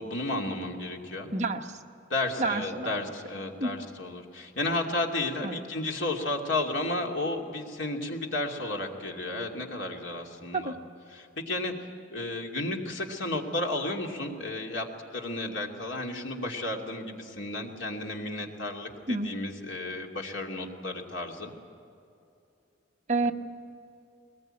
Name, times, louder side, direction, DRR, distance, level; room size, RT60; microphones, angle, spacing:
voice 1, 0.0-1.3 2.1-10.8 11.1-11.7 12.1-21.5, left 2 dB, 80° left, 1 dB, 2.7 m, -33 dB
voice 2, 1.3-1.6 2.4-2.9 3.6-3.7 5.4-5.6 10.5-10.7 19.1-19.3 23.1-23.3, right 3 dB, 40° right, 4 dB, 1.1 m, -28 dB
22.0 x 20.0 x 9.0 m, 2.6 s
head